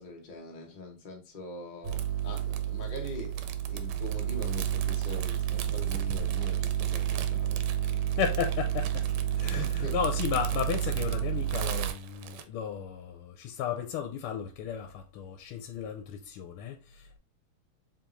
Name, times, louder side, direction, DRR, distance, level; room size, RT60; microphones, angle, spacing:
voice 1, 0.0-3.3 3.7-8.0 9.5-9.9, left 2 dB, 35° left, 0.8 m, -43 dB
sound 1, 1.8-11.9, right 11 dB, 65° right, 1.3 m, -30 dB
sound 2, 1.9-12.4, right 8 dB, 90° right, 1.5 m, -42 dB
voice 2, 8.1-9.1 9.4-17.2, left 8 dB, 85° left, 1.5 m, -34 dB
4.6 x 3.6 x 2.6 m
omnidirectional pair, 2.4 m